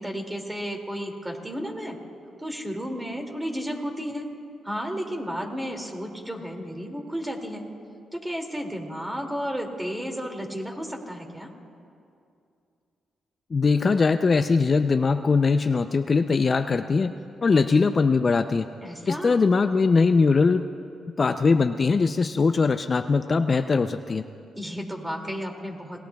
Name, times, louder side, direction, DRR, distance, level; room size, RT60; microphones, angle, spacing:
voice 1, 0.0-2.0 2.4-4.3 4.6-7.7 8.1-11.5 18.8-19.4 24.5-26.0, equal, 10° right, 2 dB, 2.4 m, -33 dB
voice 2, 13.5-17.1 17.4-18.7 19.1-20.7 21.2-24.2, left 4 dB, 40° left, 9 dB, 0.4 m, -21 dB
26.5 x 19.5 x 2.3 m, 2.5 s
cardioid pair, 80°, 0 cm